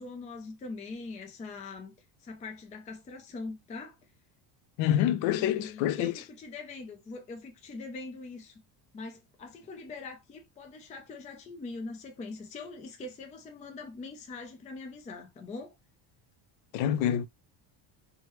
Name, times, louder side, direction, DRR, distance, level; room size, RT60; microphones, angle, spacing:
voice 1, 0.0-1.9 2.2-4.0 5.2-8.6 8.9-15.7, left 3 dB, 15° left, 0.4 m, -42 dB
voice 2, 4.8-6.2 16.7-17.3, left 11 dB, 75° left, 0.5 m, -27 dB
3.1 x 2.3 x 3.0 m
cardioid pair, 135°, 47 cm